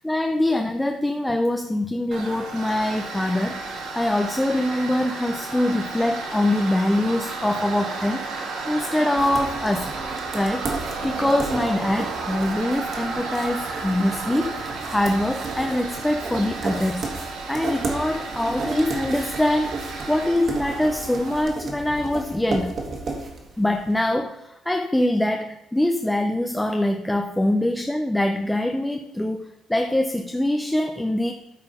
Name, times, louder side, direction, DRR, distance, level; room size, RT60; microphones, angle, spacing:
voice 1, 0.0-8.3 8.7-9.9 10.3-10.7 11.0-22.7 23.6-31.3, left 1 dB, 5° left, 5 dB, 0.4 m, -24 dB
Tools, 2.1-21.4, right 3 dB, 75° right, 1.8 m, -33 dB
sound 1, 9.1-24.0, right 3 dB, 35° right, 1.6 m, -34 dB
12.5 x 4.4 x 5.4 m, 0.84 s
cardioid pair, 175°, 0 cm